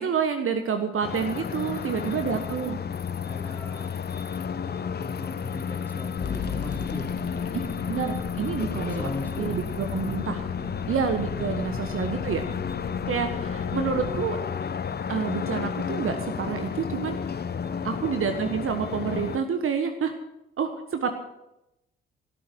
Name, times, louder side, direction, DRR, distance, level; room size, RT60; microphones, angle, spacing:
voice 1, 0.0-2.8 7.9-9.1 9.4-10.4 10.9-12.4 13.1-14.4 15.1-17.2 17.8-20.1 20.6-21.1, right 6 dB, 45° right, 7 dB, 1.4 m, -28 dB
sound 1, 1.0-19.4, left 7 dB, 35° left, 0.9 m, -32 dB
voice 2, 1.6-2.4 3.2-3.9 4.6-7.1 8.5-9.5 10.6-10.8 11.4-12.0 17.5-17.8, left 2 dB, 5° left, -1 dB, 3.4 m, -39 dB
sound 2, 6.2-14.2, left 6 dB, 50° left, 1.8 m, -37 dB
18.0 x 12.5 x 4.6 m, 0.87 s
figure-of-eight pair, 45°, 30 cm